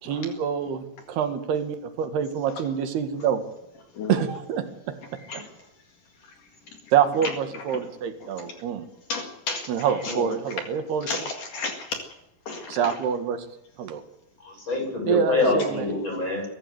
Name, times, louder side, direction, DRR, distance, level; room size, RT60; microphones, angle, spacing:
voice 1, 0.0-3.4 4.1-4.9 6.9-8.9 9.7-11.1 12.7-13.5 13.8-14.0 15.1-15.9, right 8 dB, 85° right, 8 dB, 3.8 m, -26 dB
voice 2, 7.2-7.8 8.2-8.3 9.1-9.6 10.0-10.2 11.1-12.0 12.5-13.0 15.6-15.7, left 4 dB, 60° left, 4 dB, 3.4 m, -33 dB
voice 3, 14.4-16.4, left 2 dB, 30° left, 1 dB, 8.6 m, -26 dB
24.0 x 14.0 x 8.0 m, 0.84 s
omnidirectional pair, 4.5 m